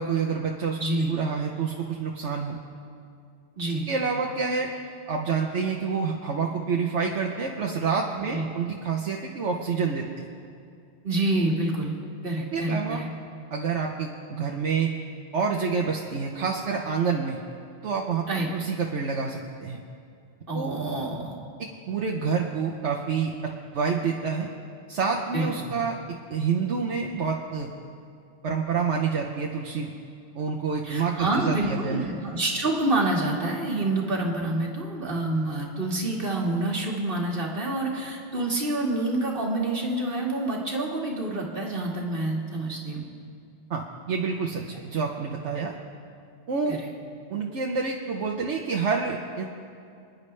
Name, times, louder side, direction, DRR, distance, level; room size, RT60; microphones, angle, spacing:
voice 1, 0.0-0.8 1.1-2.6 3.9-4.7 5.1-10.3 12.5-13.0 13.5-14.9 15.3-17.4 17.8-18.3 18.5-19.8 20.5-20.8 21.6-24.5 24.9-26.0 26.3-27.7 28.4-29.9 30.3-32.2 43.7-45.7 46.5-46.8 47.3-49.4, right 5 dB, 85° right, 0 dB, 1.2 m, -28 dB
voice 2, 0.8-1.1 3.6-3.9 8.3-8.5 11.0-12.0 12.2-13.1 18.3-18.5 20.5-21.3 25.3-25.7 30.8-43.0 46.7-46.9, right 2 dB, 55° right, -1 dB, 2.0 m, -27 dB
29.5 x 10.5 x 3.3 m, 2.4 s
omnidirectional pair, 1.2 m